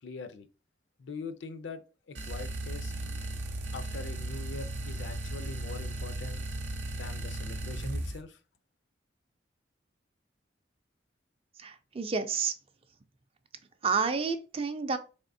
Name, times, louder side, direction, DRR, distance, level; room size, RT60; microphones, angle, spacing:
voice 1, 0.0-0.5 1.0-2.9 3.7-6.4 6.9-8.4, left 4 dB, 85° left, 0.5 m, -43 dB
sound 1, 2.1-8.2, right 1 dB, 75° right, 0.6 m, -36 dB
voice 2, 11.6-12.5 13.8-15.0, right 5 dB, 30° right, 0.4 m, -30 dB
4.0 x 3.5 x 2.6 m
head